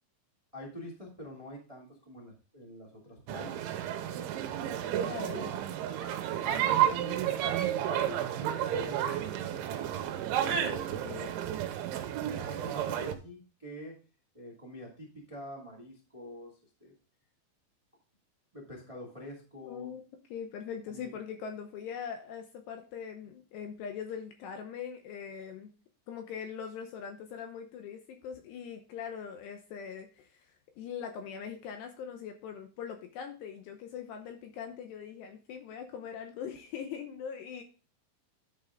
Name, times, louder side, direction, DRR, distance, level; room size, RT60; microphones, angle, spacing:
voice 1, 0.5-3.6 5.3-5.6 6.3-9.6 10.9-11.3 12.3-14.0 14.3-16.9 18.5-19.9 20.9-21.1, equal, 30° right, -2 dB, 0.6 m, -46 dB
sound 1, 3.3-13.1, right 10 dB, 85° right, 3.1 m, -31 dB
voice 2, 5.0-5.4 10.5-11.3 19.6-20.0 20.3-25.7 26.1-30.4 30.8-37.6, left 7 dB, 75° left, 5 dB, 2.6 m, -41 dB
11.0 x 5.5 x 3.6 m, 0.34 s
omnidirectional pair, 5.6 m